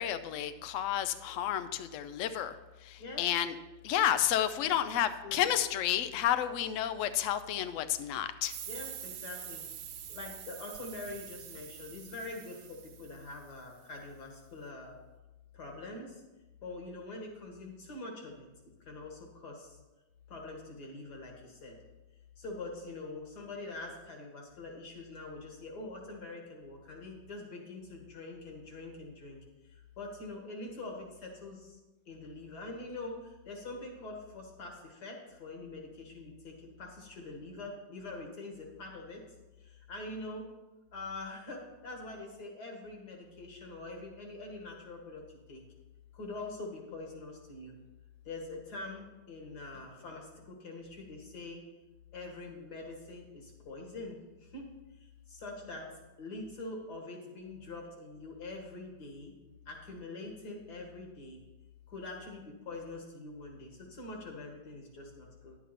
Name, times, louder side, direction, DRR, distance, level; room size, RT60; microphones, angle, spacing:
voice 1, 0.0-3.5 3.8-8.5, left 11 dB, 85° left, 11 dB, 0.6 m, -31 dB
sound 1, 8.4-13.8, right 10 dB, 80° right, 1.4 m, -46 dB
voice 2, 8.7-9.6 10.1-15.0 15.5-16.2 16.6-18.5 18.8-19.8 20.3-21.8 22.4-29.4 29.7-31.8 32.1-39.2 39.6-40.5 40.9-45.6 46.1-47.8 48.2-51.6 52.1-55.9 56.2-59.3 59.7-61.4 61.9-65.6, left 2 dB, 60° left, 1 dB, 2.3 m, -44 dB
11.0 x 8.5 x 4.3 m, 1.1 s
omnidirectional pair, 2.0 m